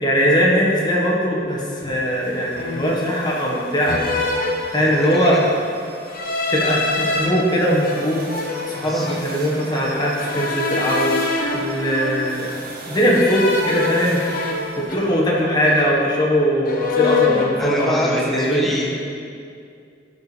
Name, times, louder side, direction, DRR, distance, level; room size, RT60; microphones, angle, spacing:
voice 1, 0.0-4.0 4.7-5.4 6.5-8.2 8.7-11.1 11.5-12.5 12.9-14.2 14.9-18.7, equal, 20° left, -4 dB, 1.4 m, -20 dB
sound 1, 1.4-1.7 2.5-3.1 3.9-5.3 6.1-7.3 7.8-9.4 10.2-12.5 13.1-15.4 15.6-16.4 16.6-17.6, left 4 dB, 50° left, 0.9 m, -25 dB
sound 2, 2.0-15.2, right 2 dB, 50° right, 1.1 m, -39 dB
voice 2, 4.7-5.5 8.8-9.2 17.1-17.2 17.6-18.9, left 1 dB, ahead, -4 dB, 1.3 m, -26 dB
12.5 x 6.9 x 3.4 m, 2.4 s
head